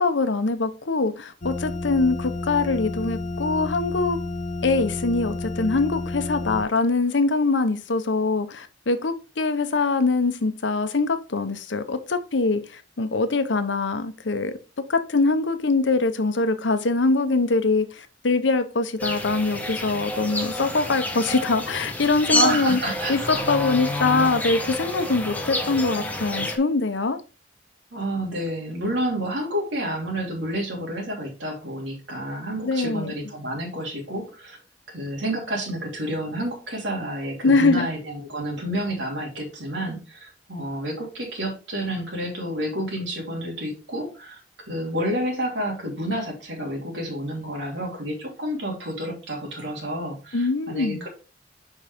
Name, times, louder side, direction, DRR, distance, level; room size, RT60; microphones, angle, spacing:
voice 1, 0.0-4.2 4.6-14.5 14.9-22.8 23.1-27.2 32.6-33.1 37.4-37.9 50.3-51.1, left 3 dB, 85° left, 0.8 m, -23 dB
sound 1, 1.4-6.6, left 2 dB, 45° left, 0.8 m, -31 dB
sound 2, 19.0-26.6, left 1 dB, 10° left, 1.1 m, -29 dB
voice 2, 22.3-23.3 27.9-34.6 34.9-44.4 44.7-51.1, right 1 dB, 90° right, 2.7 m, -29 dB
6.4 x 5.4 x 3.5 m
head